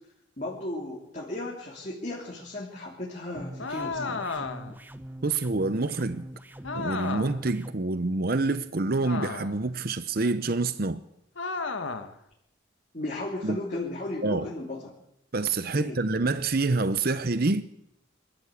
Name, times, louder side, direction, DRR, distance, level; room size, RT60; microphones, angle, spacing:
voice 1, 0.4-4.4 12.9-14.9 15.7-16.0, left 1 dB, 35° left, 3.3 m, -35 dB
sound 1, 3.3-7.7, right 1 dB, 10° right, 0.8 m, -43 dB
sound 2, 3.6-4.8 6.6-7.5 9.0-9.7 11.4-12.2, left 4 dB, 75° left, 1.7 m, -33 dB
voice 2, 5.2-6.2 6.7-11.0 13.4-13.6 14.2-14.5 15.3-17.6, right 3 dB, 45° right, 0.7 m, -27 dB
25.0 x 13.5 x 8.5 m
head